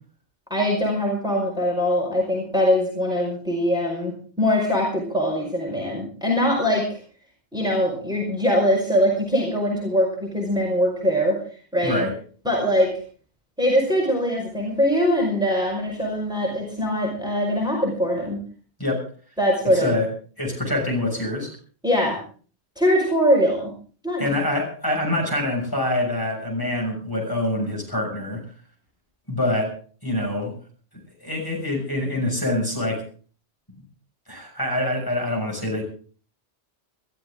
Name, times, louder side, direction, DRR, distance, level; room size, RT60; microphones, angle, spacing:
voice 1, 0.5-7.0 7.5-11.4 11.7-12.0 12.5-13.0 13.6-18.4 19.4-19.9 21.8-22.2 22.8-23.7 24.0-24.2, equal, 5° right, -2 dB, 5.2 m, -22 dB
voice 2, 11.8-12.1 18.8-19.0 19.6-20.1 20.4-21.5 24.2-28.4 29.3-29.8 30.0-30.5 31.2-33.0 34.3-35.8, left 1 dB, 20° left, 0 dB, 6.7 m, -25 dB
21.5 x 14.0 x 3.8 m, 0.41 s
omnidirectional pair, 1.1 m